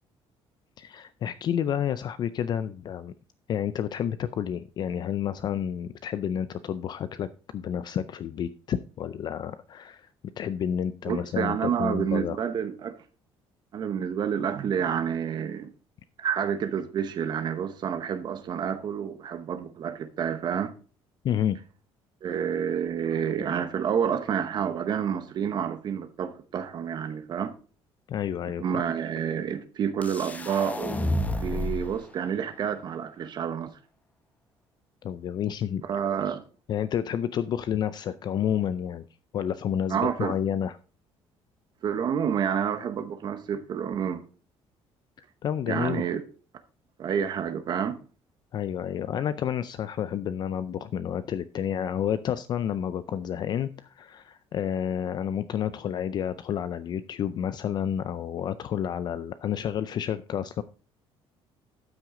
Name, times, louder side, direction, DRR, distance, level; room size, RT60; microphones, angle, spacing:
voice 1, 0.8-3.1 3.5-7.3 7.5-10.1 10.4-12.4 21.2-21.6 28.1-28.6 35.0-35.8 36.7-39.1 39.3-40.8 45.4-46.1 48.5-60.6, left 9 dB, 40° left, 0.4 m, -30 dB
voice 2, 11.1-12.9 13.7-15.7 16.2-20.7 22.2-27.5 28.6-33.7 35.9-36.4 39.9-40.4 41.8-44.2 45.7-46.2 47.0-48.0, right 8 dB, 45° right, 0.9 m, -29 dB
sound 1, 30.0-32.0, left 1 dB, 15° left, 0.9 m, -30 dB
12.5 x 6.1 x 3.7 m
cardioid pair, 160°, 11 cm